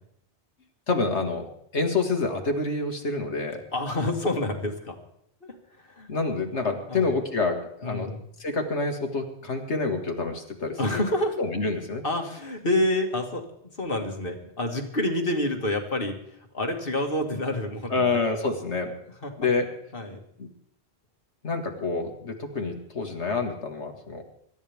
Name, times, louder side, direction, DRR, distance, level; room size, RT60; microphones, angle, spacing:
voice 1, 0.9-1.5 1.7-3.6 6.1-8.1 8.4-11.0 11.4-12.0 17.9-18.9 19.4-19.7 20.4-20.5 21.4-24.2, left 3 dB, 85° left, 4 dB, 2.3 m, -27 dB
voice 2, 3.7-5.0 5.4-6.1 6.9-7.1 7.8-8.2 10.8-11.4 12.0-13.5 13.8-16.2 16.5-18.1 19.2-19.5 19.9-20.2, left 1 dB, 55° left, 3 dB, 2.2 m, -28 dB
25.5 x 13.0 x 3.6 m, 0.72 s
omnidirectional pair, 1.1 m